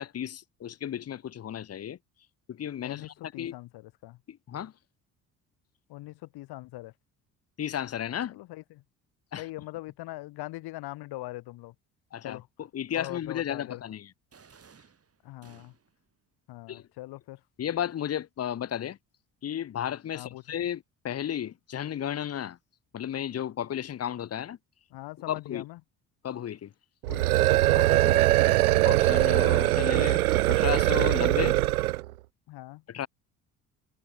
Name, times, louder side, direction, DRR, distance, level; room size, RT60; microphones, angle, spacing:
voice 1, 0.0-2.0 2.5-3.5 4.3-4.7 7.6-8.4 9.3-9.4 12.1-14.1 16.7-16.8 17.6-19.0 19.4-22.6 22.9-24.6 25.3-25.6 26.2-26.7 28.8-30.2 30.5-31.6 32.9-33.1, left 10 dB, 35° left, 1.0 m, -33 dB
voice 2, 2.8-4.2 5.9-6.9 8.3-8.8 9.4-11.7 12.2-12.5 12.9-13.8 15.2-15.7 16.5-17.4 20.1-20.4 24.9-25.8 27.1-27.3 27.7-28.3 32.5-32.8, left 18 dB, 65° left, 3.2 m, -41 dB
sound 1, 14.3-16.1, right 6 dB, 35° right, 5.8 m, -57 dB
monster roar, 27.0-32.1, right 16 dB, 90° right, 0.5 m, -22 dB
hypercardioid pair, 55°, 42 cm